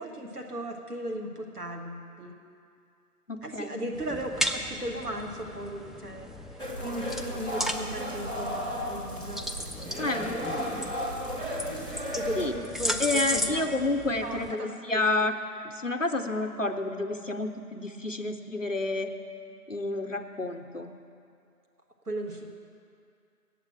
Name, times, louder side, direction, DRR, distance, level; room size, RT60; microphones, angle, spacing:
voice 1, 0.0-2.3 3.4-6.4 6.8-10.7 12.1-13.7 14.2-15.0 22.1-22.5, right 1 dB, 70° right, 2 dB, 1.5 m, -37 dB
voice 2, 3.3-3.8 10.0-10.4 12.4-12.5 13.0-15.3 15.6-19.1 19.7-20.9, left 2 dB, 55° left, 5 dB, 0.6 m, -30 dB
sound 1, 3.9-14.5, equal, ahead, 0.3 m, -36 dB
sound 2, 6.6-12.5, equal, 35° right, 1.3 m, -34 dB
8.1 x 7.3 x 8.7 m, 2.4 s
figure-of-eight pair, 170°, 47 cm